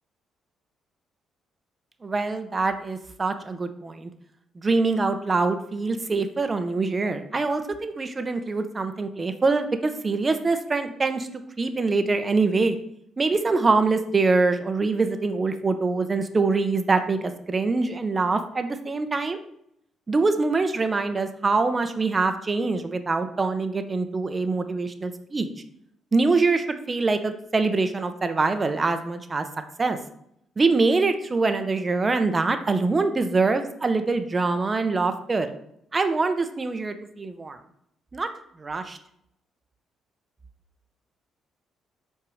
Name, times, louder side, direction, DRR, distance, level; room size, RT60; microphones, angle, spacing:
voice 1, 2.0-4.1 4.6-11.3 11.6-12.8 13.2-19.4 20.1-25.5 26.1-29.4 29.8-30.0 30.6-35.5 35.9-37.6 38.1-38.3 38.6-39.0, right 3 dB, 30° right, 8 dB, 0.9 m, -24 dB
5.9 x 4.7 x 6.4 m, 0.75 s
cardioid pair, 90°, 0 cm